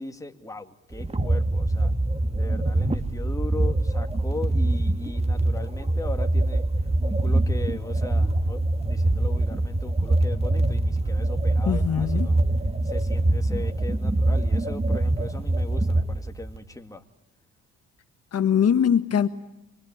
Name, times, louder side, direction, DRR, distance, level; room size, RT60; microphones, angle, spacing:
voice 1, 0.0-1.9 2.4-6.6 7.0-12.4 12.8-17.0, left 2 dB, 10° left, 2.3 m, -38 dB
sound 1, 0.9-16.6, right 2 dB, 20° right, 2.1 m, -24 dB
voice 2, 11.6-12.4 18.3-19.3, left 8 dB, 55° left, 1.6 m, -22 dB
26.0 x 24.0 x 8.8 m
cardioid pair, 90°, 30 cm